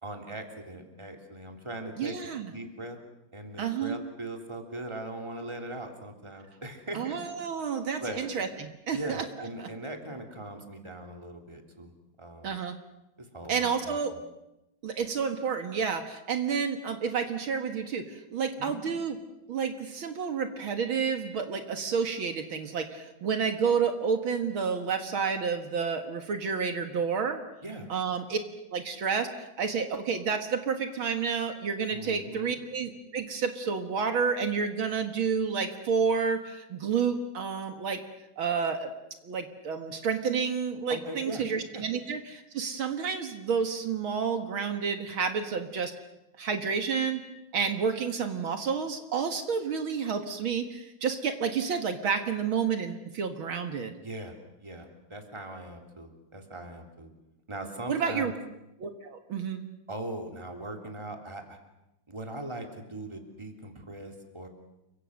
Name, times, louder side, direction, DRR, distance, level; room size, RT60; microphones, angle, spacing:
voice 1, 0.0-3.0 3.3-7.2 8.0-8.3 8.9-11.9 12.2-12.6 13.2-14.2 18.5-18.8 27.6-27.9 31.9-32.6 40.9-41.4 41.7-41.8 54.0-54.3 54.6-57.1 57.5-58.3 59.9-61.6 62.1-64.5, right 1 dB, 15° right, 3 dB, 3.2 m, -40 dB
voice 2, 2.0-2.5 3.6-4.0 6.9-9.7 12.4-12.8 13.5-14.1 14.8-19.2 19.5-27.4 27.9-28.4 28.7-38.0 38.4-38.9 39.2-45.9 46.4-47.2 47.5-53.9 57.9-58.3 58.8-59.6, right 6 dB, 70° right, 6 dB, 2.5 m, -30 dB
29.5 x 24.0 x 6.5 m, 0.90 s
omnidirectional pair, 2.3 m